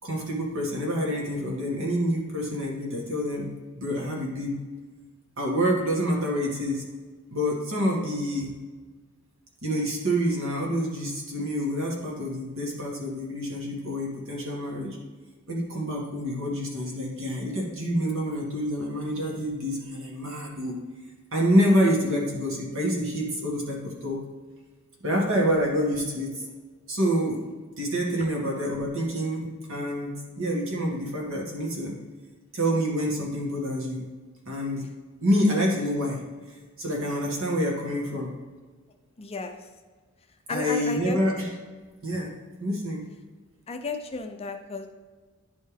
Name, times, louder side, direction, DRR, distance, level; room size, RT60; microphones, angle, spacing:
voice 1, 0.0-3.5 3.8-4.6 5.4-6.9 7.3-8.6 9.6-15.0 15.5-20.8 21.3-24.2 25.0-26.3 26.9-27.4 27.8-31.9 32.5-34.0 34.5-34.9 35.2-36.2 36.5-38.3 40.5-41.5 42.0-43.1, equal, 65° right, -2 dB, 1.9 m, -27 dB
voice 2, 39.2-39.5 40.5-41.2 43.7-44.9, left 3 dB, 25° left, 5 dB, 0.5 m, -33 dB
10.5 x 4.4 x 3.4 m, 1.4 s
head